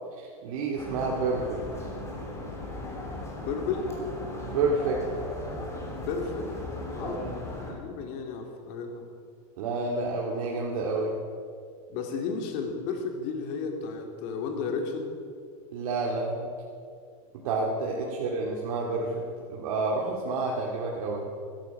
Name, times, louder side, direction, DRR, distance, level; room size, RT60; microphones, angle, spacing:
voice 1, 0.2-1.6 4.4-5.1 7.0-7.4 9.6-11.2 15.7-16.5 17.4-19.2 19.5-21.3, right 3 dB, 70° right, -2 dB, 2.2 m, -29 dB
sound 1, 0.8-7.7, left 1 dB, 15° left, 3.3 m, -37 dB
voice 2, 3.4-3.9 5.9-6.5 7.0-7.3 7.7-9.1 11.9-15.1 18.0-18.1, left 5 dB, 50° left, 3 dB, 2.6 m, -33 dB
15.0 x 13.0 x 5.9 m, 2.3 s
supercardioid pair, 135°, 19 cm